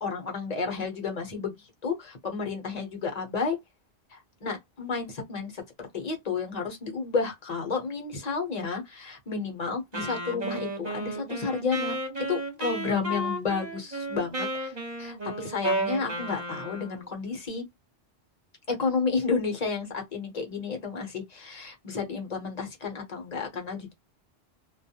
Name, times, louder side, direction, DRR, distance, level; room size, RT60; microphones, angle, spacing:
voice 1, 0.0-3.6 4.1-17.6 18.7-23.9, left 4 dB, 40° left, 0.9 m, -31 dB
Wind instrument woodwind instrument, 9.9-17.1, right 1 dB, 45° right, 1.0 m, -33 dB
2.3 x 2.1 x 2.8 m
omnidirectional pair, 1.1 m